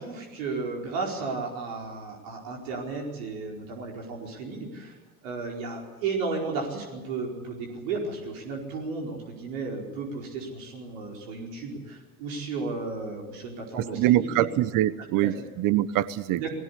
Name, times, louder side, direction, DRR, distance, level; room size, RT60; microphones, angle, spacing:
voice 1, 0.0-5.0 5.2-14.3 15.2-15.3 16.4-16.5, right 4 dB, 65° right, 0 dB, 4.9 m, -34 dB
voice 2, 13.8-16.4, right 14 dB, 50° right, 15 dB, 1.1 m, -24 dB
19.5 x 17.0 x 8.4 m, 1.3 s
hypercardioid pair, 75°, 43 cm